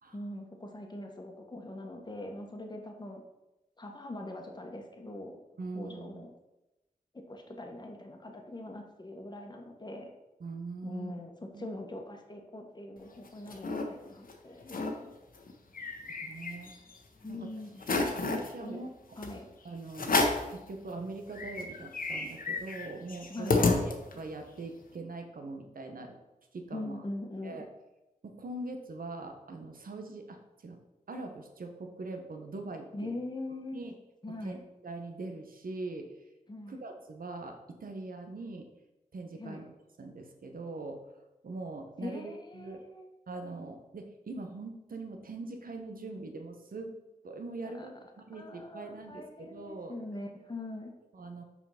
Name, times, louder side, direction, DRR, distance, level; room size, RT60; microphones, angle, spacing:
voice 1, 0.1-3.2 3.8-5.4 5.7-6.3 7.1-10.1 10.8-15.1 17.2-17.8 18.6-18.8 19.2-19.5 23.3-23.6 26.7-27.7 32.9-33.8 34.2-34.6 36.5-36.8 39.3-39.6 42.0-43.1 47.8-47.9 48.3-50.9, left 1 dB, 30° left, 2 dB, 1.3 m, -42 dB
voice 2, 5.6-6.3 10.4-11.1 11.5-11.7 16.2-16.7 17.3-17.5 17.8-19.2 19.6-20.2 20.5-23.6 23.9-26.2 26.5-27.0 27.4-27.7 28.2-30.8 31.1-33.1 33.7-33.9 34.4-36.1 36.7-38.7 39.1-41.1 41.4-42.8 43.3-47.0 47.2-49.9 51.1-51.4, right 2 dB, 75° right, 5 dB, 1.1 m, -42 dB
sound 1, 13.0-13.8 14.3-14.4 14.6-14.9 15.3-16.9 17.3-17.4 17.8-18.5 19.2-19.4 19.9-20.5 21.0-21.1 21.3-24.3, left 3 dB, 75° left, 1.1 m, -30 dB
6.0 x 4.7 x 5.8 m, 0.98 s
wide cardioid pair, 65°, 15 cm